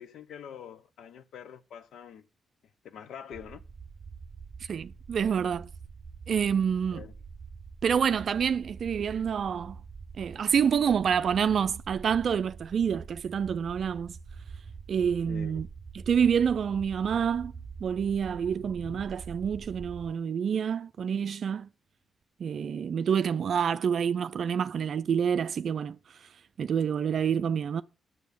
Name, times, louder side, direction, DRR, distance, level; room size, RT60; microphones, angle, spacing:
voice 1, 0.0-2.2 2.8-3.6 6.9-7.1 15.3-15.7 18.5-19.4, left 8 dB, 75° left, 0.8 m, -46 dB
sound 1, 3.3-20.1, right 5 dB, 40° right, 0.7 m, -45 dB
voice 2, 4.7-5.7 6.3-7.0 7.8-9.8 10.2-14.2 14.9-15.7 15.9-17.5 17.8-21.7 22.4-26.0 26.2-26.3 26.6-27.8, right 7 dB, 65° right, 0.4 m, -27 dB
8.3 x 7.0 x 6.9 m
supercardioid pair, 55°, 0 cm